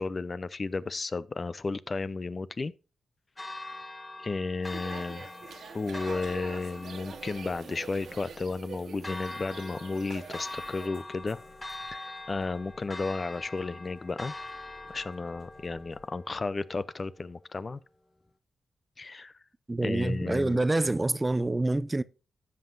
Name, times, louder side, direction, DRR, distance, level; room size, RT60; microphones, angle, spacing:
voice 1, 0.0-2.7 4.2-5.3 5.7-11.4 11.9-14.3 14.9-17.8 19.0-19.3 19.8-20.6, left 3 dB, 40° left, 0.5 m, -33 dB
Church bell, 3.4-17.4, left 2 dB, 20° left, 1.0 m, -43 dB
sound 1, 4.6-10.9, right 5 dB, 75° right, 1.6 m, -45 dB
sound 2, 5.4-16.1, left 2 dB, 70° left, 4.9 m, -59 dB
voice 2, 19.7-22.0, right 2 dB, 20° right, 0.4 m, -27 dB
15.0 x 5.6 x 2.5 m
cardioid pair, 70°, 0 cm